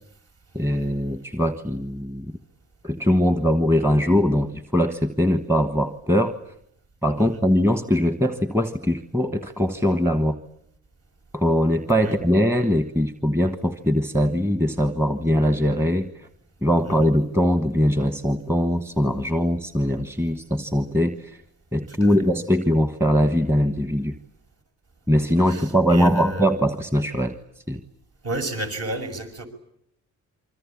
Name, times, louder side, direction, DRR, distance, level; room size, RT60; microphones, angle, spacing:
voice 1, 0.5-2.3 2.8-6.4 7.0-10.4 11.3-16.1 16.6-21.4 21.7-24.1 25.1-27.3 27.7-27.8, equal, 10° right, 8 dB, 1.3 m, -21 dB
voice 2, 25.4-26.5 28.2-29.5, right 2 dB, 55° right, 6 dB, 6.0 m, -31 dB
26.5 x 25.0 x 8.6 m, 0.72 s
cardioid pair, 140°, 30 cm